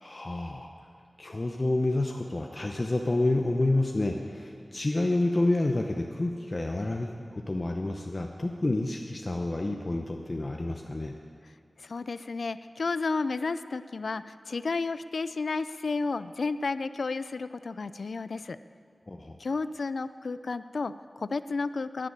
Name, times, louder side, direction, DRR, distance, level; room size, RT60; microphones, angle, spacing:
voice 1, 0.0-0.7 1.2-11.2 19.1-19.4, left 2 dB, 45° left, 2 dB, 0.8 m, -29 dB
voice 2, 11.8-18.6 19.4-22.1, left 4 dB, 85° left, 14 dB, 0.4 m, -32 dB
11.0 x 10.0 x 9.1 m, 2.3 s
wide cardioid pair, 50°, 0 cm